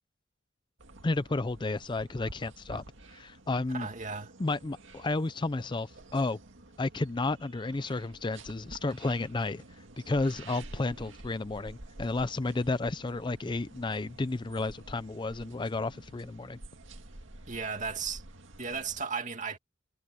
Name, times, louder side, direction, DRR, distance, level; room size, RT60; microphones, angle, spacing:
sound 1, 0.8-19.0, right 2 dB, 75° right, 2.2 m, -50 dB
voice 1, 1.0-2.8 3.1-3.9 4.4-6.4 6.8-9.6 10.1-16.6, left 2 dB, 25° left, 0.5 m, -32 dB
voice 2, 3.7-4.3 17.5-18.2 18.6-19.6, right 5 dB, 40° right, 2.4 m, -35 dB
head